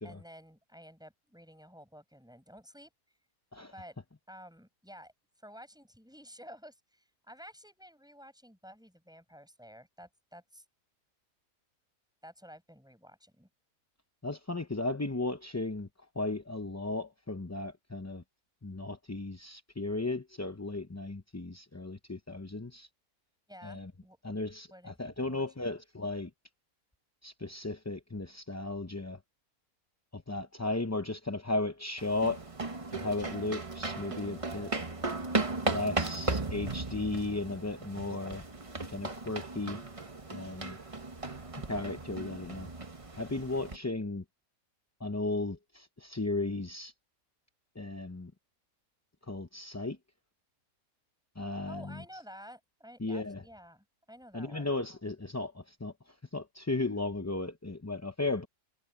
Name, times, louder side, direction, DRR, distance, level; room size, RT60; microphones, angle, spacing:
voice 1, 0.0-2.9 3.7-4.0 4.3-5.1 5.4-10.6 12.2-13.5 23.5-24.2 24.7-25.7 51.7-54.7, equal, 5° right, 7.7 m, -52 dB
voice 2, 14.2-15.9 16.1-18.2 18.6-22.9 23.6-23.9 24.2-26.3 27.2-29.2 30.1-32.4 32.9-34.7 35.6-38.4 38.9-39.8 40.3-40.8 41.7-42.7 43.2-44.2 45.0-46.9 47.7-48.3 49.3-50.0 51.4-52.0 53.0-53.4 54.3-58.5, left 2 dB, 15° left, 0.5 m, -35 dB
sound 1, 32.0-43.8, right 3 dB, 25° right, 1.3 m, -36 dB
omnidirectional pair, 1.5 m